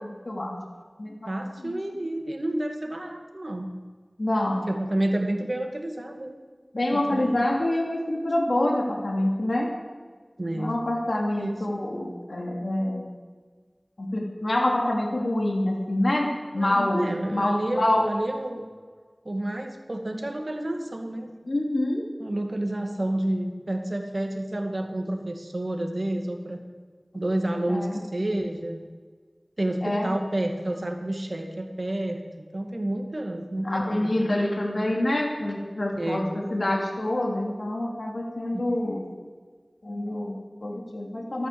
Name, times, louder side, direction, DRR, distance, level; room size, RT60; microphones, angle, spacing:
voice 1, 0.3-0.6 1.0-1.1 1.6-1.7 4.2-4.7 6.7-9.7 10.5-13.1 14.0-18.1 21.5-22.0 27.7-28.0 29.8-30.1 33.6-39.1 39.8-41.5, left 1 dB, 70° left, 0 dB, 2.7 m, -26 dB
voice 2, 1.3-3.7 4.7-6.3 6.9-7.5 10.4-10.7 11.1-11.7 16.6-18.7 19.2-21.3 22.2-26.6 27.1-28.8 29.6-34.2 35.9-36.3 38.5-38.6, right 1 dB, 55° right, 4 dB, 2.2 m, -30 dB
14.0 x 12.5 x 7.1 m, 1.5 s
wide cardioid pair, 50°, 0 cm